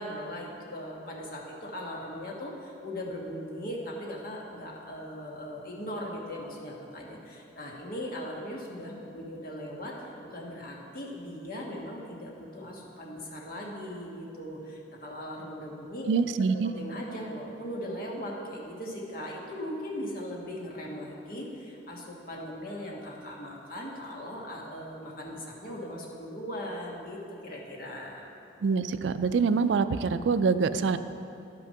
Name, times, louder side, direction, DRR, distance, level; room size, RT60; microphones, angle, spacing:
voice 1, 0.0-16.2 16.5-28.3, equal, 50° left, -2 dB, 1.5 m, -39 dB
voice 2, 16.1-16.7 28.6-31.0, right 5 dB, 80° right, 12 dB, 0.4 m, -25 dB
11.5 x 6.1 x 5.7 m, 2.7 s
head